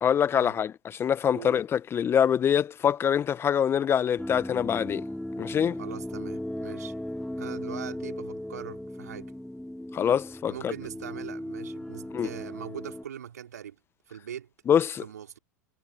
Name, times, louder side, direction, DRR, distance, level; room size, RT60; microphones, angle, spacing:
voice 1, 0.0-5.0 5.4-5.8 9.9-10.7 12.1-12.3 14.7-15.0, left 8 dB, 25° left, 1.2 m, -25 dB
sound 1, 4.2-13.0, left 1 dB, 5° left, 6.6 m, -37 dB
voice 2, 5.8-6.9 7.4-9.3 10.5-13.8 14.1-14.5 15.0-15.4, right 9 dB, 75° right, 4.4 m, -41 dB
hypercardioid pair, 95°, 9 cm